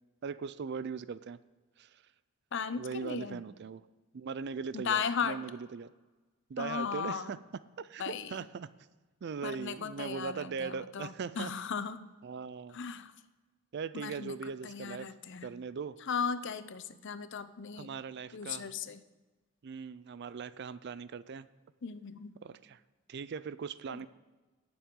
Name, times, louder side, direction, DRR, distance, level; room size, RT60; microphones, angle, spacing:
voice 1, 0.2-1.4 1.8-1.9 2.8-3.8 4.1-5.9 6.5-7.4 7.8-8.7 9.2-11.5 12.2-12.8 13.7-15.1 15.4-16.0 17.8-18.7 19.6-21.5 22.4-22.8 23.1-24.1, right 5 dB, 50° right, 16 dB, 0.4 m, -39 dB
voice 2, 2.5-3.4 4.7-5.4 6.6-7.4 8.0-8.4 9.4-12.1 12.7-13.1 13.9-14.3 14.6-15.5 16.1-17.9 18.3-19.0 21.8-22.3 23.9-24.0, left 6 dB, 55° left, 13 dB, 0.6 m, -36 dB
18.0 x 7.1 x 3.8 m, 1.2 s
head